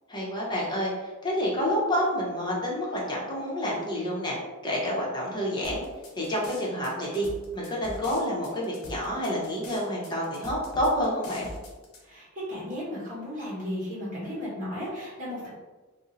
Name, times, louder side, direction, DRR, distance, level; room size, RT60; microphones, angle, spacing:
voice 1, 0.1-4.4 4.6-5.8 6.2-7.3 7.5-11.5, equal, 20° left, -5 dB, 0.8 m, -28 dB
sound 1, 5.6-12.0, equal, 75° left, 0.8 m, -43 dB
voice 2, 12.0-15.5, left 1 dB, 40° right, -7 dB, 1.2 m, -35 dB
2.7 x 2.1 x 3.8 m, 1.3 s
head